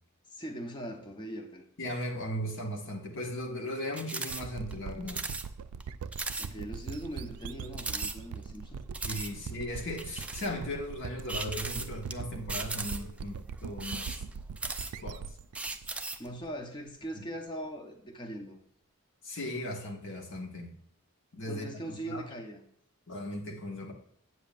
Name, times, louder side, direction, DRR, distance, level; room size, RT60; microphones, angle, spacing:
voice 1, 0.3-1.6 6.4-8.8 16.2-18.6 21.5-22.6, right 1 dB, 20° left, 2 dB, 0.8 m, -40 dB
voice 2, 1.8-5.3 9.0-14.2 15.0-15.2 17.1-17.2 19.2-20.8 21.3-21.6 22.0-22.2 23.1-23.9, left 1 dB, 55° left, 2 dB, 1.3 m, -37 dB
sound 1, 3.9-4.4 4.7-4.8 5.1-5.5 5.8-5.9 6.1-6.5 6.9-7.0 7.7-8.6 8.9-9.3 10.0-10.5 11.3-12.1 12.5-13.2 13.7-15.1 15.5-16.3, right 3 dB, 5° right, 0.3 m, -37 dB
sound 2, 4.3-16.9, right 6 dB, 85° right, 0.4 m, -41 dB
8.1 x 7.2 x 2.5 m, 0.69 s
head